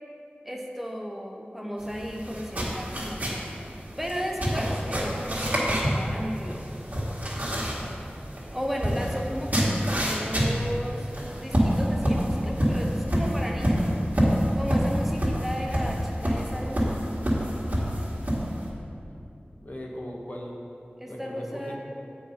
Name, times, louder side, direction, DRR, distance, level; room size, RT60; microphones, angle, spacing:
voice 1, 0.4-6.7 8.5-11.1 11.4-14.0 14.6-17.0 21.0-21.8, equal, 5° right, 0 dB, 0.7 m, -34 dB
sound 1, 1.8-18.7, equal, 50° right, 1.7 m, -27 dB
voice 2, 19.5-20.5 21.1-21.8, left 1 dB, 45° left, -2 dB, 1.1 m, -38 dB
8.0 x 4.7 x 5.4 m, 2.7 s
wide cardioid pair, 50°, 4 cm